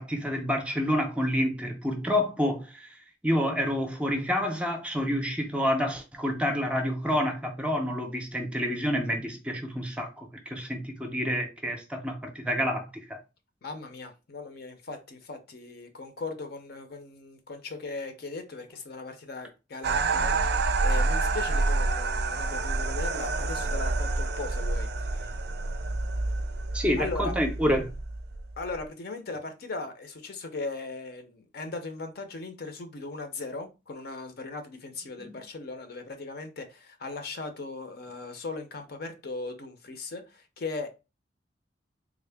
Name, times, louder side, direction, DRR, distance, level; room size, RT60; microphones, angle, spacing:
voice 1, 0.0-3.0 3.2-13.2 26.7-27.9 35.2-35.4, equal, 5° right, 0.5 m, -28 dB
voice 2, 13.6-25.3 27.0-27.3 28.6-40.9, left 3 dB, 55° left, 0.6 m, -38 dB
sound 1, 19.8-28.8, right 3 dB, 60° right, 0.4 m, -28 dB
3.6 x 2.1 x 3.3 m
head